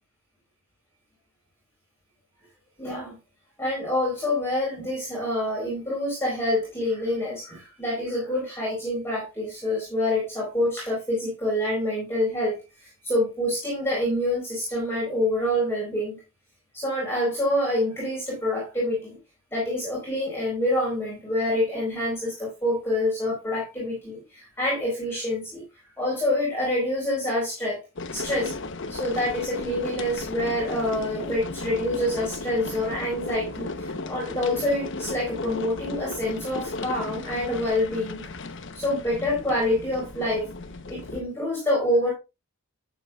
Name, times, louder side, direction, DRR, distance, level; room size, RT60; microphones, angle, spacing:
voice 1, 2.8-3.2 3.6-16.2 16.7-19.2 19.5-25.6 26.0-27.8 28.1-28.5 28.9-38.3 38.7-40.5 40.9-42.1, left 1 dB, 10° left, -5 dB, 4.2 m, -27 dB
sound 1, 28.0-41.2, left 3 dB, 55° left, 1.0 m, -35 dB
11.0 x 8.5 x 2.4 m, 0.25 s
head